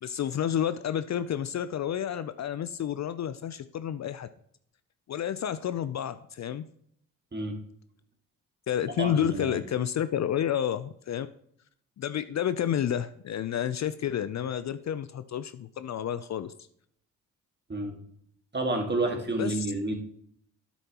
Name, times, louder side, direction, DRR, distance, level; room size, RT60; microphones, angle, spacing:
voice 1, 0.0-4.3 5.1-6.6 8.7-11.3 12.0-16.5 19.4-19.7, left 10 dB, 45° left, 13 dB, 0.5 m, -30 dB
voice 2, 9.0-9.6 17.7-18.0 18.5-19.9, right 2 dB, 25° right, 4 dB, 1.8 m, -29 dB
9.1 x 7.1 x 2.9 m, 0.66 s
supercardioid pair, 50°, 38 cm